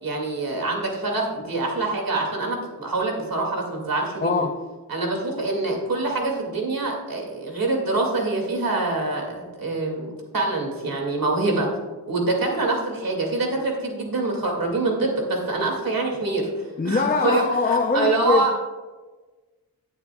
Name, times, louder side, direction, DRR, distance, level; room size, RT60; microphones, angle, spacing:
voice 1, 0.0-4.5 4.9-11.7 12.1-18.5, right 2 dB, 75° right, 2.2 m, -25 dB
voice 2, 4.2-4.7 16.8-18.6, left 4 dB, 25° left, 0.5 m, -22 dB
19.0 x 7.1 x 2.2 m
wide cardioid pair, 125°, 35 cm